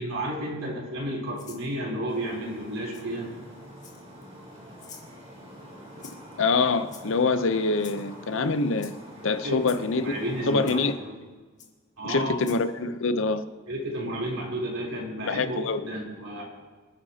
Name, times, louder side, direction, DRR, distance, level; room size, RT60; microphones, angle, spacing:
voice 1, 0.0-3.3 9.4-9.6 9.9-11.2 12.0-12.4 13.7-16.4, right 1 dB, 80° right, -4 dB, 3.6 m, -32 dB
Rattle (instrument), 1.4-1.7 2.9-3.0 3.8-4.2 4.8-5.1 6.0-6.3 6.9-7.3 7.8-8.0 8.8-8.9 9.6-9.8 10.7-10.8 11.6-11.7 12.4-12.6, left 7 dB, 35° left, 1.8 m, -47 dB
sound 1, 2.1-10.9, equal, 35° right, 3.7 m, -46 dB
voice 2, 6.4-9.0 9.2-10.1 10.5-10.9 12.0-13.5 15.3-15.9, left 3 dB, 65° left, 12 dB, 0.7 m, -25 dB
26.5 x 9.9 x 2.9 m, 1.4 s
head